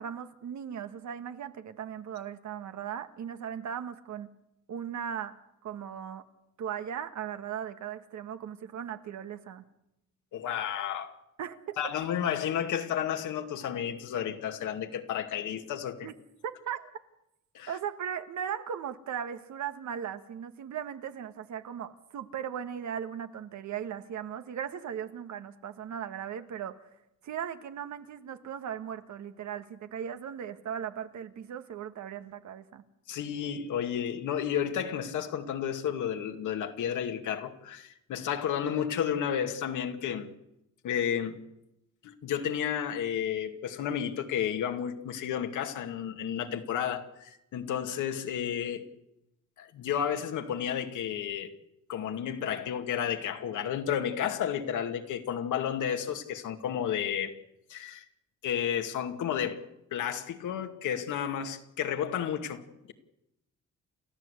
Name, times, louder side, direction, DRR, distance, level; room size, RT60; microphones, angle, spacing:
voice 1, 0.0-4.3 4.7-6.3 6.6-9.6 11.4-11.9 16.0-16.1 16.4-16.9 17.7-26.9 27.2-32.8, right 8 dB, 65° right, 1.7 m, -38 dB
voice 2, 10.3-11.1 11.8-16.1 17.5-17.7 33.1-40.3 40.8-41.4 42.0-48.8 49.6-51.5 51.9-57.3 57.7-58.0 58.4-59.6 59.9-62.9, left 9 dB, 80° left, 2.4 m, -32 dB
29.5 x 14.0 x 8.3 m
cardioid pair, 90°, 30 cm